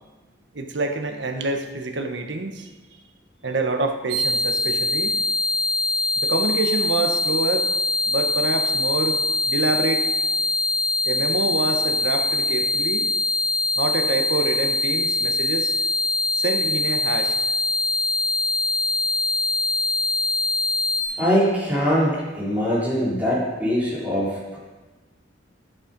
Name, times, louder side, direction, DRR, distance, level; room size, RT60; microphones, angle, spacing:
voice 1, 0.5-2.7 3.4-5.2 6.2-7.7 8.1-9.2 9.5-10.1 11.0-13.1 13.8-15.7 16.4-17.3, right 2 dB, 65° right, 5 dB, 1.3 m, -26 dB
sound 1, 4.1-21.0, left 2 dB, 30° right, 3.1 m, -23 dB
voice 2, 21.2-24.6, equal, 10° right, -7 dB, 4.0 m, -22 dB
13.5 x 10.0 x 5.3 m, 1.2 s
head